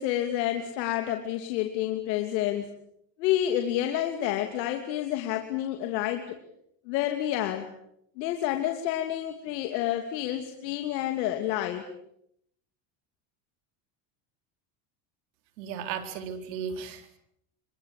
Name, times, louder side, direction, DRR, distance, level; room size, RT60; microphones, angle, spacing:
voice 1, 0.0-2.7 3.2-6.4 6.9-7.7 8.2-11.8, left 12 dB, 85° left, 5 dB, 2.9 m, -29 dB
voice 2, 15.6-17.2, right 7 dB, 90° right, 7 dB, 4.3 m, -35 dB
26.5 x 24.0 x 8.5 m, 0.75 s
supercardioid pair, 110°, 49 cm